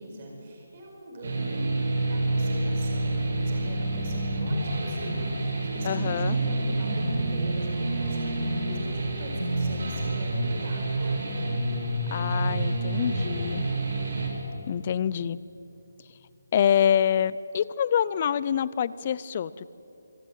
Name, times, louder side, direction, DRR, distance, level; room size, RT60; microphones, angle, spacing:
voice 1, 0.0-1.7 2.0-11.2, right 1 dB, 30° right, 0 dB, 5.2 m, -43 dB
sound 1, 1.2-14.3, right 2 dB, 50° right, 6.6 m, -28 dB
Piano, 5.7-10.8, left 9 dB, 5° left, 4.1 m, -47 dB
voice 2, 5.8-6.4 12.1-13.7 14.7-15.4 16.5-19.7, left 9 dB, 25° left, 19 dB, 0.5 m, -26 dB
25.0 x 16.5 x 9.2 m, 2.9 s
hypercardioid pair, 170°, 0 cm